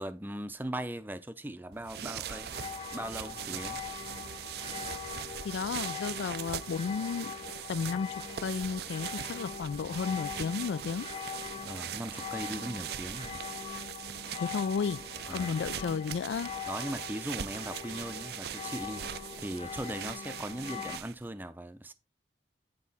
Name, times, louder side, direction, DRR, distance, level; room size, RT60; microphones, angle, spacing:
voice 1, 0.0-2.5 2.9-3.8 11.6-13.4 15.3-15.5 16.7-19.0 19.4-21.9, right 1 dB, 10° right, 0.5 m, -39 dB
sound 1, 1.7-21.3, right 10 dB, 60° right, 0.4 m, -41 dB
sound 2, 2.3-21.0, left 7 dB, 30° left, 0.7 m, -42 dB
voice 2, 5.4-7.4 7.7-11.1 14.4-15.0 15.3-16.5, left 5 dB, 85° left, 0.3 m, -33 dB
9.5 x 4.7 x 4.1 m
head